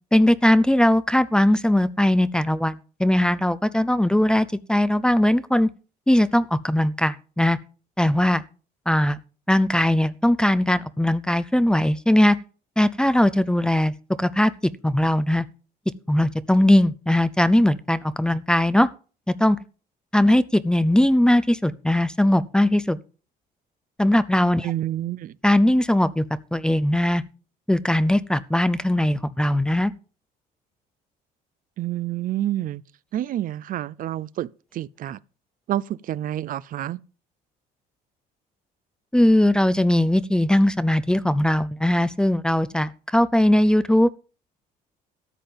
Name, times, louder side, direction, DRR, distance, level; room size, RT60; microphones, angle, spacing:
voice 1, 0.1-5.7 6.1-7.6 8.0-8.4 8.9-9.2 9.5-12.4 12.8-13.9 14.2-14.5 14.8-15.5 16.1-18.9 19.4-19.6 20.1-23.0 24.0-24.7 25.4-26.2 26.5-27.2 27.7-29.9 39.1-44.1, left 1 dB, 5° left, 0.5 m, -19 dB
voice 2, 24.6-25.4 31.8-32.8 33.1-35.2 35.7-37.0, right 13 dB, 55° right, 0.5 m, -28 dB
13.5 x 7.5 x 5.2 m
cardioid pair, 110°, 17 cm